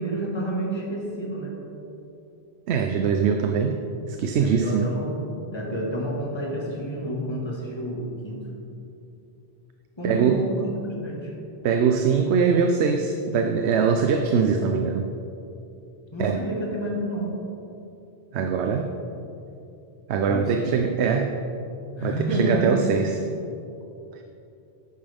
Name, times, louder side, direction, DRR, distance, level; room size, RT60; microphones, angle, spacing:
voice 1, 0.0-1.6 4.4-8.5 10.0-11.3 16.1-17.4 20.2-20.7 21.9-23.3, right 1 dB, 25° left, -2 dB, 1.7 m, -29 dB
voice 2, 2.7-3.8 4.1-4.9 10.0-10.4 11.6-15.1 16.2-16.4 18.3-18.9 20.1-21.3 22.0-23.2, right 6 dB, 85° right, 5 dB, 0.9 m, -22 dB
11.0 x 8.9 x 3.5 m, 2.7 s
omnidirectional pair, 1.1 m